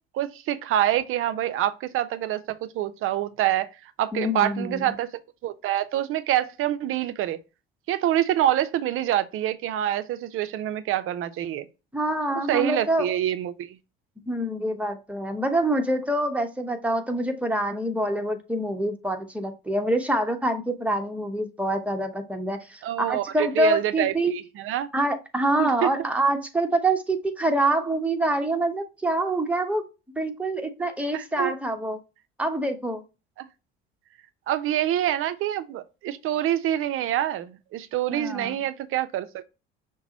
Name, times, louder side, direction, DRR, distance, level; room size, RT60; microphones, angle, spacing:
voice 1, 0.1-3.7 4.0-5.1 5.4-7.4 7.9-11.7 12.5-13.8 22.8-24.1 24.6-24.9 25.6-25.9 31.0-31.5 33.4-33.5 34.5-39.4, right 12 dB, 45° right, 0.6 m, -26 dB
voice 2, 4.1-4.8 11.9-13.2 14.3-24.4 24.9-29.8 30.1-32.0 32.4-33.0 38.1-38.6, right 1 dB, 5° right, 1.1 m, -26 dB
5.9 x 2.2 x 4.0 m
hypercardioid pair, 65°, 29 cm